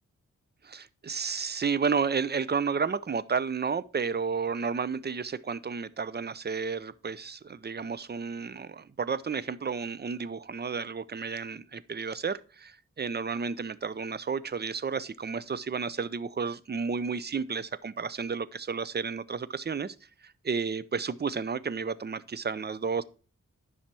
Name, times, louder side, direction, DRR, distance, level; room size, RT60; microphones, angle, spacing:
voice 1, 0.6-19.9 20.2-23.0, right 5 dB, 35° right, 0.6 m, -32 dB
10.5 x 5.7 x 4.6 m
wide cardioid pair, 85°, 30 cm